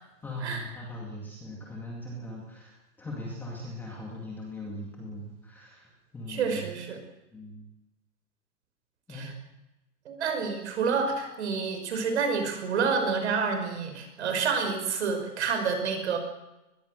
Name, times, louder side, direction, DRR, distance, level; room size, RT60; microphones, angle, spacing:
voice 1, 0.2-6.7 7.3-7.6 9.1-9.3, left 1 dB, 5° left, -2 dB, 2.1 m, -40 dB
voice 2, 6.3-7.0 9.1-9.3 10.1-16.2, right 5 dB, 45° right, 5 dB, 5.9 m, -28 dB
23.0 x 21.5 x 6.6 m, 0.98 s
hypercardioid pair, 175°, 48 cm